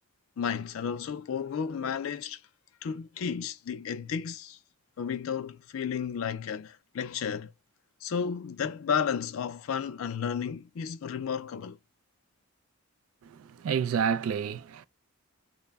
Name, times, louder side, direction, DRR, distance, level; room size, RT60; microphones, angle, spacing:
voice 1, 0.4-2.4 2.8-4.6 5.0-7.5 8.0-11.8, left 7 dB, 75° left, 0.4 m, -32 dB
voice 2, 13.2-14.9, right 7 dB, 90° right, 0.3 m, -29 dB
2.1 x 2.0 x 3.3 m
head